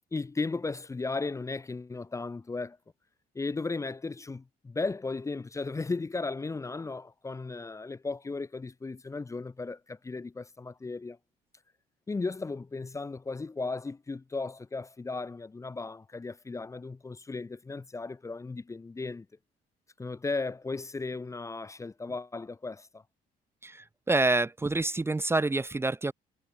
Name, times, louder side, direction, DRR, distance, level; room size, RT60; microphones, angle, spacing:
voice 1, 0.1-2.8 3.3-11.2 12.1-19.3 20.0-23.0, left 3 dB, 20° left, 1.0 m, -35 dB
voice 2, 23.6-26.1, right 2 dB, 15° right, 0.9 m, -27 dB
cardioid pair, 110°, 17 cm